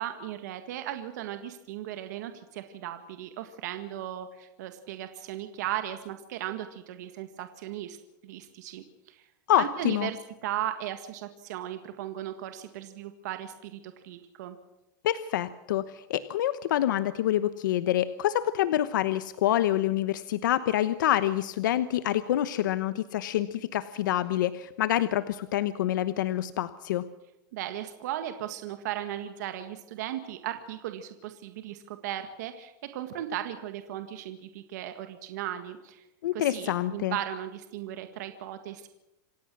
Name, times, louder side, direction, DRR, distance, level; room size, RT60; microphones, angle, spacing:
voice 1, 0.0-8.0 8.2-9.2 9.6-14.6 27.5-36.0 36.3-38.9, right 12 dB, 60° right, 8 dB, 1.8 m, -37 dB
voice 2, 9.5-10.1 15.0-27.0 36.2-37.2, left 12 dB, 75° left, 14 dB, 1.0 m, -27 dB
27.0 x 16.5 x 6.3 m, 0.94 s
supercardioid pair, 170°, 11 cm